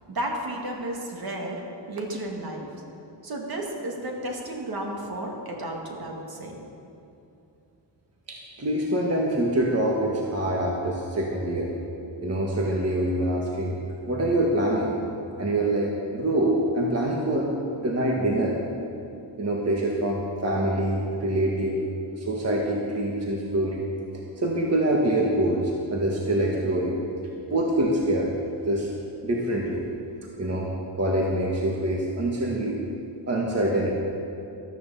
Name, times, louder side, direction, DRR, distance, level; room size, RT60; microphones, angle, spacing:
voice 1, 0.1-1.6 1.9-2.7 3.2-6.6, right 1 dB, 55° right, 0 dB, 2.3 m, -33 dB
voice 2, 8.3-11.7 12.2-13.8 14.1-14.9 15.4-17.5 17.8-18.6 19.4-21.9 22.2-23.9 24.4-27.0 27.5-28.3 28.6-28.9 29.2-29.8 30.4-30.7 30.9-32.8 33.3-33.9, right 1 dB, 35° right, -2 dB, 1.6 m, -25 dB
13.5 x 11.0 x 7.1 m, 2.7 s
wide cardioid pair, 125°, 45 cm